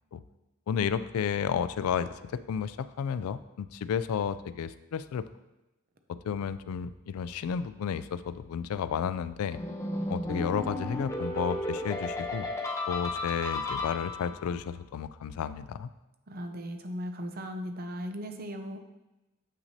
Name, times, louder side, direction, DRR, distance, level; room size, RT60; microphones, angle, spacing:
voice 1, 0.7-5.3 6.1-9.6 10.1-12.5 12.9-15.9, left 7 dB, 85° left, 14 dB, 0.3 m, -32 dB
sound 1, 9.5-14.4, left 2 dB, 15° left, 0.7 m, -33 dB
voice 2, 16.3-18.8, equal, 45° right, 6 dB, 0.6 m, -37 dB
7.7 x 5.8 x 2.8 m, 1.0 s
head